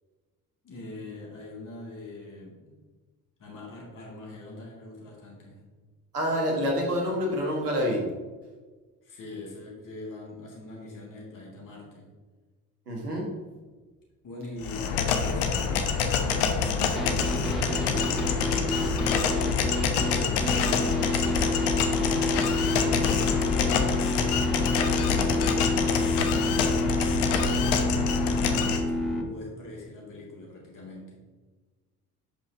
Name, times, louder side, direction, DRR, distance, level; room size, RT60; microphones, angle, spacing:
voice 1, 0.6-2.7 3.4-5.6 9.0-12.1 14.2-18.3 23.2-24.2 25.8-28.0 28.7-31.2, left 2 dB, 45° left, -3 dB, 2.6 m, -43 dB
voice 2, 6.1-8.1 12.9-13.3 25.1-25.5, equal, 90° right, -1 dB, 1.5 m, -28 dB
sound 1, 14.6-28.8, left 6 dB, 60° left, 1.0 m, -26 dB
sound 2, 17.0-29.2, left 1 dB, ahead, 1.7 m, -29 dB
11.0 x 5.5 x 2.9 m, 1.3 s
figure-of-eight pair, 50°, 45 cm